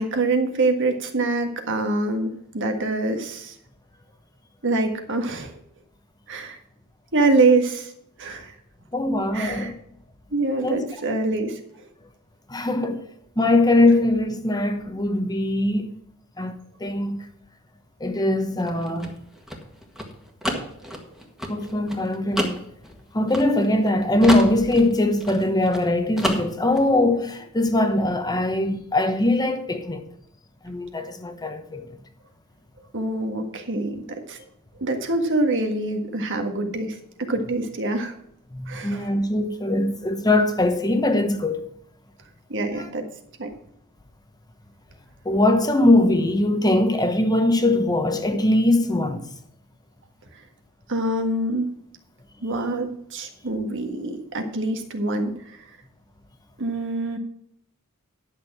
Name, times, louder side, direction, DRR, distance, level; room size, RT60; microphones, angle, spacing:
voice 1, 0.0-3.5 4.6-5.5 6.3-6.6 7.1-7.9 8.2-8.5 9.3-9.7 10.3-11.6 32.9-34.4 34.8-37.0 37.3-38.1 38.7-39.1 42.5-43.0 43.4-43.5 50.9-51.7 52.4-55.3 56.6-57.2, right 2 dB, 55° right, 1.6 m, -25 dB
voice 2, 8.9-9.8 10.6-10.8 12.5-13.0 13.4-15.9 16.4-16.5 16.8-17.3 18.0-19.1 21.5-22.6 23.1-30.0 30.6-31.9 38.5-41.6 42.7-42.9 45.2-49.3, left 1 dB, 20° left, 1.0 m, -21 dB
sound 1, 18.6-23.9 24.2-25.9 26.2-26.9, equal, ahead, 1.7 m, -30 dB
11.0 x 6.6 x 6.0 m
head